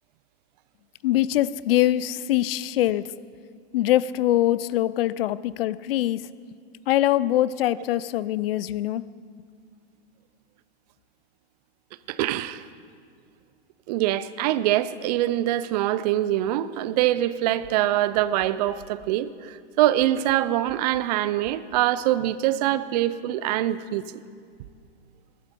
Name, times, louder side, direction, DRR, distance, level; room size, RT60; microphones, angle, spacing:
voice 1, 1.0-3.1 3.7-6.3 6.9-9.0, left 14 dB, 60° left, 18 dB, 0.5 m, -23 dB
voice 2, 12.1-12.6 13.9-24.0, right 13 dB, 40° right, 15 dB, 0.5 m, -24 dB
20.0 x 12.0 x 4.5 m, 2.1 s
hypercardioid pair, 145°, 33 cm